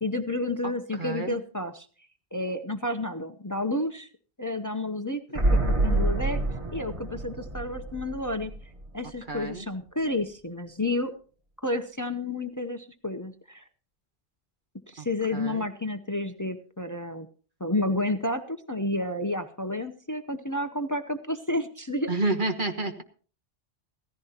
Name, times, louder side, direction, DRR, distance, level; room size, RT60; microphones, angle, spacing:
voice 1, 0.0-1.9 2.3-4.1 4.4-5.2 5.5-6.4 6.7-8.5 8.9-11.1 11.6-13.6 14.9-17.3 17.6-22.1, left 1 dB, 20° left, 9 dB, 0.7 m, -30 dB
voice 2, 1.0-1.4 9.3-9.6 15.0-15.1 15.3-15.6 22.1-23.0, right 2 dB, 50° right, 5 dB, 1.4 m, -29 dB
sound 1, 5.3-9.1 9.4-9.5, right 2 dB, 30° right, 1.1 m, -27 dB
16.0 x 15.0 x 2.9 m, 0.40 s
omnidirectional pair, 1.1 m